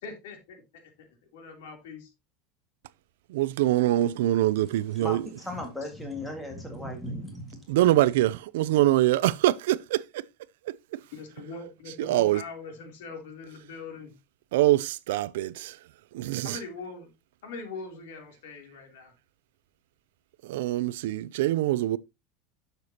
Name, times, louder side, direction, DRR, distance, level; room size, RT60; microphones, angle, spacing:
voice 1, 0.0-1.1 1.3-2.1 11.1-14.1 16.4-17.1 17.4-19.1, left 4 dB, 80° left, 3.1 m, -42 dB
voice 2, 3.3-5.2 7.7-10.2 10.7-10.8 12.0-12.4 14.5-15.8 16.1-16.6 20.4-22.0, right 15 dB, 75° right, 0.4 m, -24 dB
voice 3, 5.0-7.7, left 1 dB, 5° left, 1.8 m, -37 dB
10.5 x 6.7 x 2.8 m
supercardioid pair, 175°, 0 cm